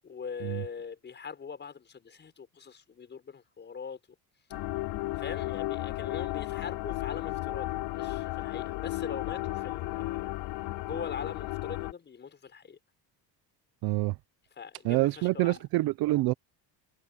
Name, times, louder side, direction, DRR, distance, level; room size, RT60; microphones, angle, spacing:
voice 1, 0.0-4.0 4.5-4.7 5.1-10.3 10.8-12.8 14.6-15.6, left 6 dB, 25° left, 6.5 m, -42 dB
sound 1, 4.5-11.9, left 19 dB, 80° left, 3.5 m, -34 dB
voice 2, 13.8-14.2 14.8-16.3, right 19 dB, 60° right, 0.7 m, -26 dB
cardioid pair, 160°, 42 cm